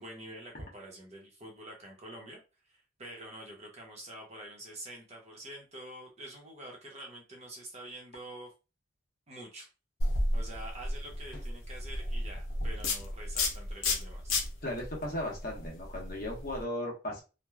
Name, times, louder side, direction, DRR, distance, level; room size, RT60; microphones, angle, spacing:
voice 1, 0.0-8.5 9.3-9.7 10.3-14.4, right 1 dB, 35° right, 0 dB, 0.8 m, -47 dB
sound 1, 10.0-16.6, left 2 dB, 85° left, 0.7 m, -33 dB
voice 2, 14.6-17.2, left 1 dB, 45° left, -1 dB, 1.0 m, -36 dB
3.0 x 2.2 x 2.3 m, 0.30 s
head